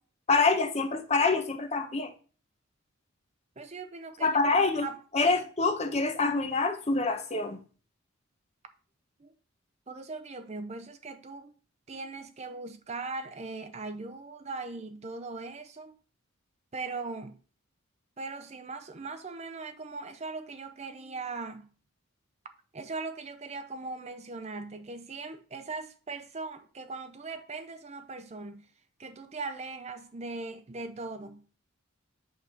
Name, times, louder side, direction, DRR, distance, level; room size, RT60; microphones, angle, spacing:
voice 1, 0.3-2.1 4.2-4.9 5.1-7.6, left 3 dB, 30° left, 1.0 m, -26 dB
voice 2, 3.6-5.0 9.2-9.3 9.9-11.5 11.9-16.0 16.7-17.4 18.2-21.7 22.7-28.7 29.0-31.5, right 3 dB, 30° right, 0.5 m, -40 dB
8.4 x 3.5 x 5.9 m
head